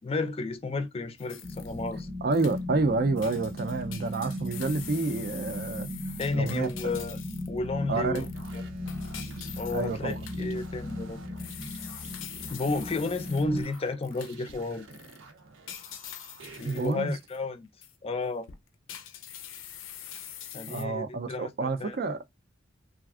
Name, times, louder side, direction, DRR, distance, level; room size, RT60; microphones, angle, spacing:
voice 1, 0.0-2.1 6.2-7.2 7.5-8.3 8.5-8.6 9.6-11.5 12.5-14.9 16.6-17.7 18.0-18.5 20.5-22.0, left 3 dB, 30° left, 0.4 m, -32 dB
sound 1, 1.2-2.0 2.3-2.9 3.2-7.6 8.2-14.6 14.9-15.2 15.7-17.4 17.8-18.0 18.4-20.8, left 10 dB, 90° left, 0.5 m, -45 dB
sound 2, 1.4-13.6, left 1 dB, 5° left, 0.8 m, -37 dB
voice 2, 2.2-5.9 6.3-6.7 7.9-8.3 9.7-10.2 16.6-17.2 20.7-22.2, right 3 dB, 50° right, 0.4 m, -29 dB
sound 3, 8.3-16.9, right 3 dB, 90° right, 0.7 m, -50 dB
3.3 x 2.4 x 2.3 m
head